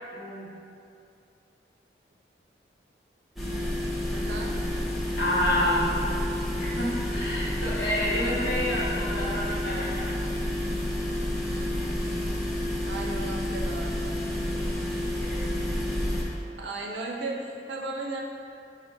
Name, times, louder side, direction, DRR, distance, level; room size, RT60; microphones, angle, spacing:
voice 1, 0.1-0.5 5.2-6.1 6.5-10.1 15.2-15.7, left 1 dB, 75° left, -6 dB, 0.9 m, -29 dB
sound 1, 3.4-16.2, left 1 dB, ahead, 0.5 m, -29 dB
voice 2, 4.1-4.6 12.9-14.2 16.6-18.2, right 2 dB, 75° right, -2 dB, 0.5 m, -35 dB
4.3 x 2.1 x 4.3 m, 2.6 s
head